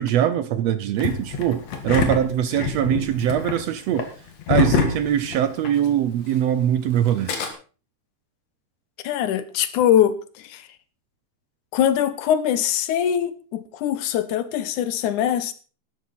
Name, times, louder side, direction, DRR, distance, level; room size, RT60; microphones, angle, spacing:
voice 1, 0.0-4.1 4.5-7.3, right 10 dB, 75° right, 12 dB, 1.6 m, -22 dB
Engine starting, 1.0-5.9 6.1-6.2 7.0-7.5, left 6 dB, 60° left, 2.9 m, -25 dB
voice 2, 9.0-10.7 11.7-15.5, left 10 dB, 80° left, 13 dB, 2.4 m, -22 dB
13.0 x 12.0 x 4.1 m, 0.37 s
omnidirectional pair, 3.5 m